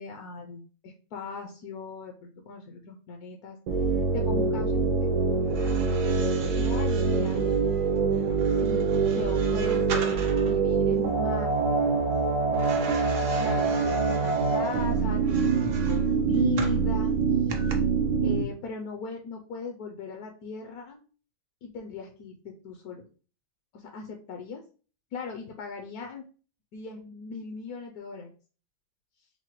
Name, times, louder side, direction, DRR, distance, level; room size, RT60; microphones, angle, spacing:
voice 1, 0.0-5.1 6.6-7.4 8.5-10.2 10.5-11.8 13.4-17.5 18.2-21.0 21.6-23.0 23.7-24.6 25.1-26.2 26.7-28.3, left 5 dB, 70° left, 2 dB, 1.0 m, -39 dB
sound 1, 3.7-18.4, right 4 dB, 85° right, 1.4 m, -25 dB
sound 2, 5.4-10.6 12.5-16.8 17.5-17.7, right 5 dB, 60° right, 0.8 m, -41 dB
5.6 x 2.1 x 3.0 m, 0.39 s
omnidirectional pair, 1.9 m